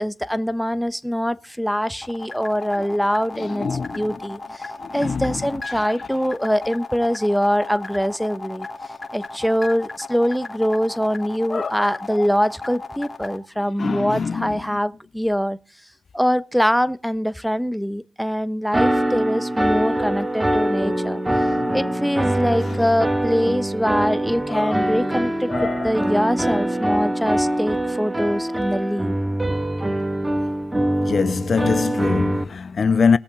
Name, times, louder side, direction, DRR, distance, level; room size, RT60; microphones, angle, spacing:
voice 1, 0.0-8.7 9.1-15.6 16.1-21.2 21.7-29.2, equal, ahead, 1.0 m, -23 dB
sound 1, 2.0-13.4, left 3 dB, 30° left, 3.1 m, -35 dB
voice 2, 3.4-4.0 4.9-5.4 11.5-11.9 13.8-14.6 21.4-21.8 24.5-24.8 25.5-25.9 31.0-33.2, left 5 dB, 55° left, 0.5 m, -23 dB
sound 2, 18.7-32.4, right 1 dB, 20° right, 1.8 m, -23 dB
19.5 x 7.1 x 3.7 m
supercardioid pair, 45°, 0 cm